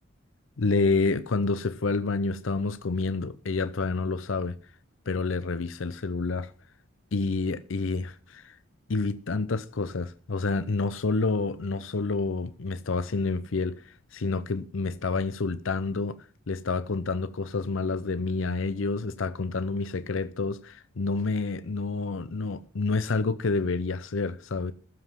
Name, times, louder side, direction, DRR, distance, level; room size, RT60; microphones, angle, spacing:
voice 1, 0.6-4.6 5.1-6.5 7.1-8.6 8.9-16.2 16.5-24.7, left 3 dB, 70° left, 0.6 m, -28 dB
14.5 x 7.4 x 5.7 m
head